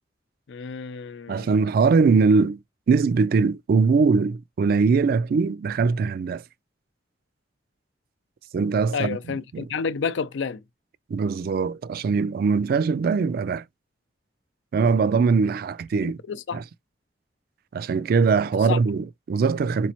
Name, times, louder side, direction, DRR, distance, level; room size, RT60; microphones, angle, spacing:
voice 1, 0.5-1.5 8.9-10.6 16.0-16.6 18.7-18.8, left 5 dB, 90° left, 0.4 m, -30 dB
voice 2, 1.3-2.6 2.9-6.4 8.5-9.7 11.1-13.6 14.7-16.2 16.5-16.6 17.7-19.9, right 5 dB, 55° right, 0.3 m, -21 dB
4.9 x 3.0 x 2.8 m
head